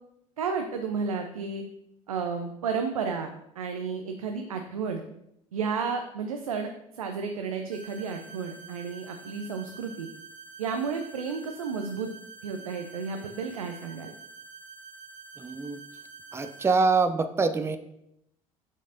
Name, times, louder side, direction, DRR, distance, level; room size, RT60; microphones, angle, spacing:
voice 1, 0.4-1.6 2.1-5.0 5.5-6.7 6.9-10.1 10.6-12.1 12.4-14.1, right 5 dB, 80° right, 5 dB, 0.5 m, -32 dB
sound 1, 7.7-16.7, right 4 dB, 50° right, 1.0 m, -47 dB
voice 2, 15.4-15.8 16.3-17.8, right 4 dB, 15° right, 10 dB, 0.5 m, -25 dB
7.2 x 6.4 x 2.7 m, 0.79 s
figure-of-eight pair, 55°, 18 cm